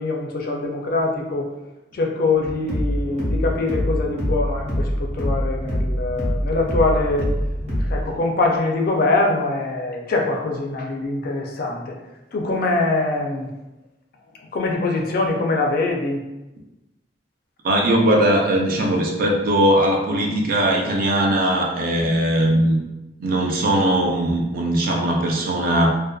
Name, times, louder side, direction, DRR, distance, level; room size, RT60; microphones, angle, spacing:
voice 1, 0.0-1.5 1.9-7.3 7.8-11.9 12.3-13.5 14.5-16.2, left 2 dB, 50° left, 1 dB, 0.4 m, -23 dB
sound 1, 2.4-8.0, equal, 35° right, 0.9 m, -24 dB
voice 2, 17.6-22.8 23.2-25.9, right 1 dB, 50° right, 0 dB, 0.4 m, -19 dB
2.5 x 2.1 x 2.3 m, 1.0 s
head